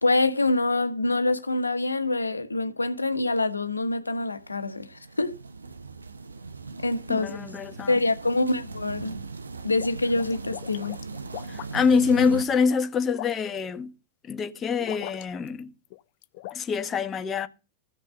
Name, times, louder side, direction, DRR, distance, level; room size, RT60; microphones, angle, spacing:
voice 1, 0.0-5.3 6.8-7.4 7.9-9.2 9.6-11.0, left 2 dB, 80° left, 1.2 m, -25 dB
sound 1, 4.3-12.4, right 3 dB, 75° right, 0.9 m, -39 dB
voice 2, 7.1-7.9 11.5-13.9 14.3-15.7 16.5-17.5, left 5 dB, 25° left, 1.1 m, -25 dB
sound 2, 9.7-11.9 12.5-13.6 14.8-15.6 15.8-16.6, left 17 dB, 50° left, 0.5 m, -40 dB
15.0 x 6.0 x 6.4 m
figure-of-eight pair, 90°, 0 cm